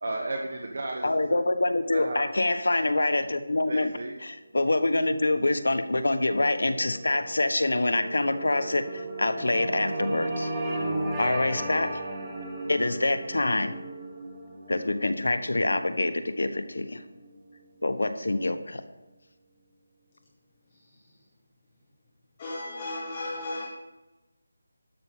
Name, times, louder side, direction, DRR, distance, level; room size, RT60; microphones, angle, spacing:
voice 1, 0.0-1.4 1.9-2.3 3.7-4.2, right 2 dB, 40° right, 2 dB, 1.2 m, -34 dB
voice 2, 1.0-3.9 4.2-10.5 11.2-12.0 12.7-13.7 14.7-17.0 17.8-18.8, left 2 dB, 85° left, 8 dB, 1.3 m, -26 dB
sound 1, 5.2-17.6, right 1 dB, 10° right, 1.4 m, -36 dB
voice 3, 22.4-23.7, left 2 dB, 15° left, -4 dB, 1.6 m, -34 dB
12.5 x 5.8 x 8.3 m, 1.1 s
figure-of-eight pair, 180°, 0 cm